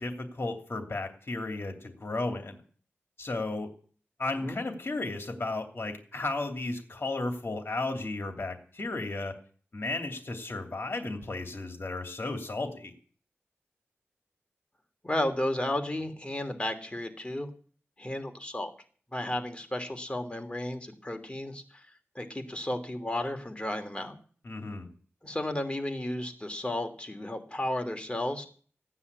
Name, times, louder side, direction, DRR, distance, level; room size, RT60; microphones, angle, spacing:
voice 1, 0.0-2.6 3.2-3.7 4.2-9.3 9.7-12.9 24.4-24.9, left 2 dB, 50° left, 5 dB, 2.8 m, -34 dB
voice 2, 15.0-17.5 18.0-18.7 19.1-21.9 22.1-24.2 25.2-28.5, left 1 dB, 25° left, 6 dB, 3.0 m, -33 dB
16.0 x 9.7 x 8.4 m, 0.43 s
wide cardioid pair, 60°, 5 cm